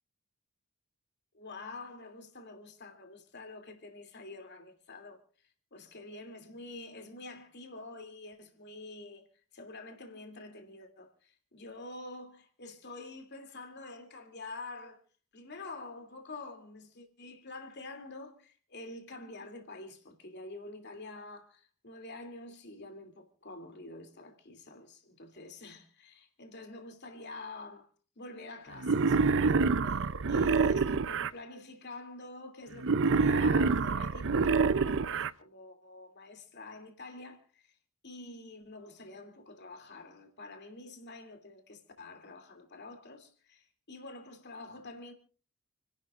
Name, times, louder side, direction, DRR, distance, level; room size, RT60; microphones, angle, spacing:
voice 1, 1.3-5.2 5.7-9.2 9.5-15.0 15.3-27.9 28.2-29.6 29.8-37.7 38.0-45.1, left 2 dB, 50° left, 2.8 m, -47 dB
Wild animals, 28.8-31.3 32.8-35.3, right 4 dB, 60° right, 0.6 m, -26 dB
29.0 x 11.5 x 2.5 m
head